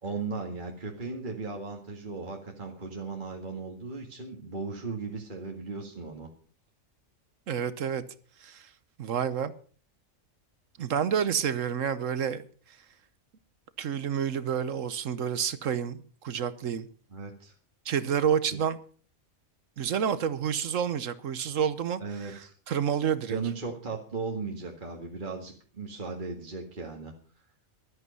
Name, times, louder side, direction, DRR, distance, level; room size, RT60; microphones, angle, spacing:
voice 1, 0.0-6.3 17.1-17.5 18.5-18.6 22.0-22.5 23.3-27.1, right 4 dB, 40° right, 2.0 m, -37 dB
voice 2, 7.5-8.0 8.4-8.6 9.0-9.5 10.8-12.4 13.8-16.9 17.9-18.8 19.8-22.0 22.7-23.4, right 8 dB, 70° right, 1.3 m, -29 dB
14.0 x 12.5 x 5.4 m
omnidirectional pair, 1.4 m